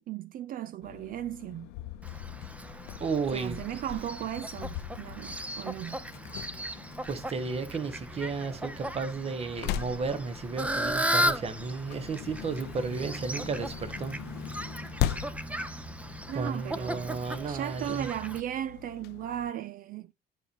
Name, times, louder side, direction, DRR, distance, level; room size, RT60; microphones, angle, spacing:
voice 1, 0.0-1.7 3.3-6.0 16.3-17.2 17.4-20.1, right 11 dB, 55° right, 0.4 m, -36 dB
sound 1, 0.8-19.5, left 12 dB, 85° left, 0.6 m, -40 dB
Fowl, 2.0-18.4, equal, 10° right, 0.7 m, -36 dB
voice 2, 3.0-3.6 6.7-14.2 16.3-18.1, right 4 dB, 35° right, 1.3 m, -33 dB
9.6 x 5.5 x 3.0 m
cardioid pair, 110°, 17 cm